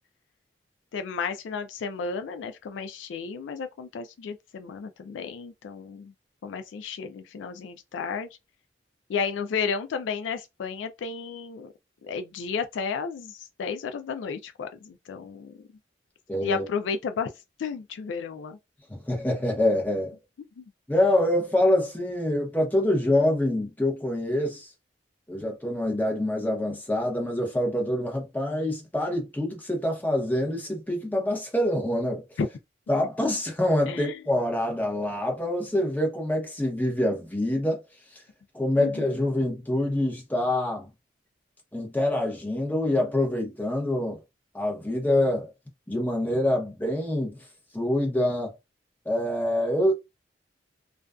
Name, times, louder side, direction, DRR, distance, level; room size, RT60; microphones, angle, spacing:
voice 1, 0.9-6.1 6.4-8.3 9.1-11.7 12.0-15.6 16.4-17.3 17.6-18.6 20.6-20.7 32.4-32.5 33.9-34.2 38.8-39.1, left 5 dB, 85° left, 0.3 m, -33 dB
voice 2, 16.3-16.6 18.9-20.2 20.9-24.7 25.3-32.2 32.9-37.8 38.5-40.9 41.7-44.2 44.5-45.5 45.9-47.4 47.7-48.5 49.0-49.9, left 1 dB, 10° left, 0.8 m, -25 dB
2.4 x 2.3 x 2.3 m
head